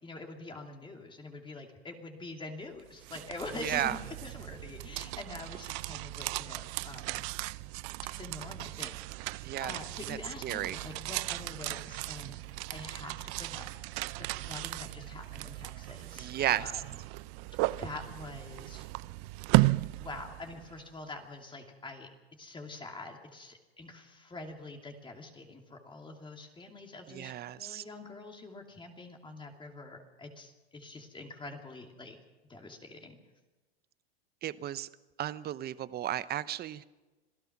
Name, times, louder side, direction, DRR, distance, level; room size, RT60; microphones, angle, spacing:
voice 1, 0.0-7.3 8.1-12.4 12.7-13.7 14.2-16.8 17.8-18.8 20.0-22.1 22.4-32.2 32.5-33.2, left 2 dB, 15° left, 2 dB, 2.8 m, -45 dB
sound 1, 2.8-20.8, right 22 dB, 50° right, 0.6 m, -35 dB
voice 2, 3.6-4.0 9.4-9.7 10.1-10.8 16.2-16.8 27.1-27.8 34.4-34.9 35.2-36.8, right 12 dB, 30° right, 15 dB, 0.9 m, -34 dB
Clapping, 10.6-17.1, right 8 dB, 80° right, 5.3 m, -58 dB
27.0 x 17.0 x 6.0 m, 1.2 s
hypercardioid pair, 110°, 31 cm